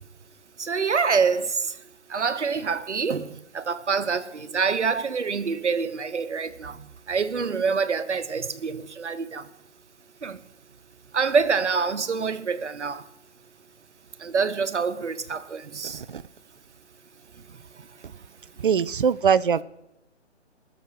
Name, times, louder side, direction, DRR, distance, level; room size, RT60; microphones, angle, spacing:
voice 1, 0.6-1.5 2.1-3.3 3.5-6.8 7.1-9.4 10.2-10.4 11.1-13.0 14.2-16.0, right 5 dB, 75° right, 1.2 m, -26 dB
voice 2, 18.6-19.6, right 7 dB, 50° right, 0.5 m, -22 dB
21.0 x 7.1 x 5.8 m
figure-of-eight pair, 140°, 35 cm